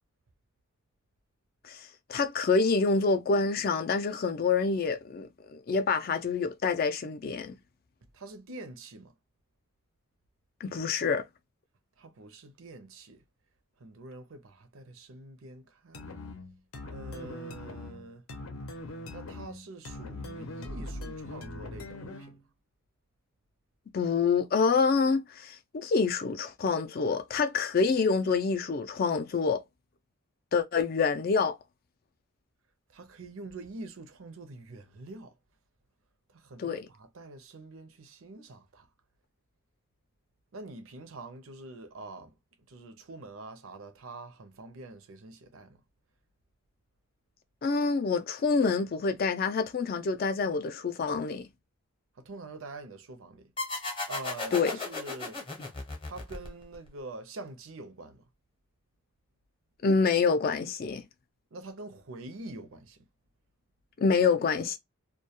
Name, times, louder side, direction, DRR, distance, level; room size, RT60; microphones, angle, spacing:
voice 1, 1.6-7.6 10.6-11.3 23.9-29.6 30.5-31.6 36.6-36.9 47.6-51.5 54.5-54.8 59.8-61.1 64.0-64.8, left 4 dB, 45° left, 0.3 m, -27 dB
voice 2, 8.1-9.1 12.0-13.2 13.8-16.1 16.9-18.2 19.1-22.4 32.9-35.3 36.3-38.9 40.5-42.3 42.7-45.8 52.2-53.5 54.1-55.4 56.0-58.2 61.5-63.0, right 2 dB, 70° right, 0.6 m, -45 dB
sound 1, 15.9-22.4, left 2 dB, 85° left, 0.6 m, -41 dB
sound 2, 53.6-56.9, left 3 dB, 25° left, 0.7 m, -36 dB
2.2 x 2.2 x 2.8 m
head